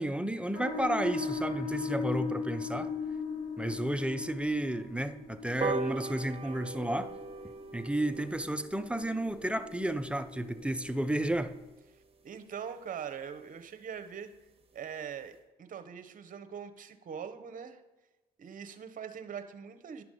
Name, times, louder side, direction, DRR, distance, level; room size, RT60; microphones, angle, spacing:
voice 1, 0.0-2.9 3.6-7.1 7.7-11.5, right 1 dB, 5° right, 10 dB, 0.5 m, -32 dB
sound 1, 0.5-11.7, left 5 dB, 50° left, 2.4 m, -39 dB
sound 2, 5.6-12.4 12.8-12.9 13.2-13.3 13.6-13.7 14.0-14.1 14.3-14.6 15.0-15.1, right 3 dB, 30° right, 1.3 m, -41 dB
voice 2, 12.2-14.3 14.7-17.8 18.4-20.0, right 7 dB, 50° right, 9 dB, 0.9 m, -42 dB
10.5 x 5.9 x 3.8 m, 1.2 s
supercardioid pair, 70°, 18 cm